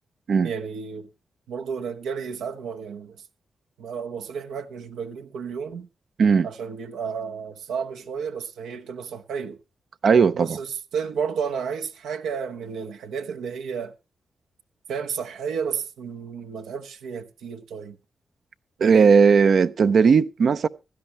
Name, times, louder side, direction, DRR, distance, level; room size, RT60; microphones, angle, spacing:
voice 1, 0.4-1.1 1.5-3.2 3.8-5.9 6.4-9.6 10.3-13.9 14.9-18.0 18.8-19.2, right 6 dB, 90° right, 1.0 m, -32 dB
voice 2, 10.0-10.6 18.8-20.7, right 5 dB, 70° right, 0.6 m, -17 dB
16.0 x 11.5 x 3.0 m
supercardioid pair, 45°, 0 cm